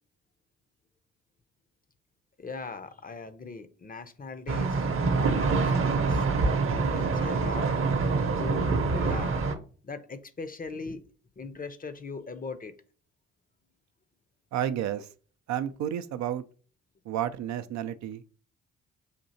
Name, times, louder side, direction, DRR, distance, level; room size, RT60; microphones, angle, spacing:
voice 1, 2.4-7.7 8.4-9.4 9.8-11.0 11.4-12.7, left 4 dB, 25° left, 0.6 m, -40 dB
sound 1, 4.5-9.5, right 4 dB, 40° right, 0.8 m, -26 dB
voice 2, 14.5-15.1 15.5-16.4 17.1-18.2, right 10 dB, 55° right, 0.4 m, -31 dB
6.5 x 2.7 x 2.7 m
hypercardioid pair, 45°, 34 cm